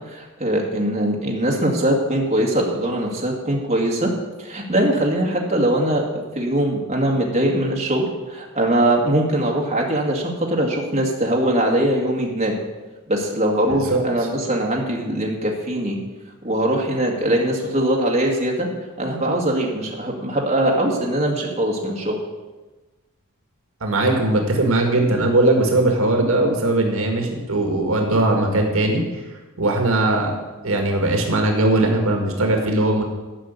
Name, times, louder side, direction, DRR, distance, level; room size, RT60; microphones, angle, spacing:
voice 1, 0.1-4.1 4.4-12.5 13.1-16.0 16.4-18.7 19.0-22.2, right 1 dB, 30° right, -1 dB, 2.0 m, -21 dB
voice 2, 13.7-14.0 23.8-29.2 29.6-33.0, right 2 dB, 65° right, 2 dB, 1.8 m, -19 dB
13.0 x 5.8 x 8.2 m, 1.2 s
head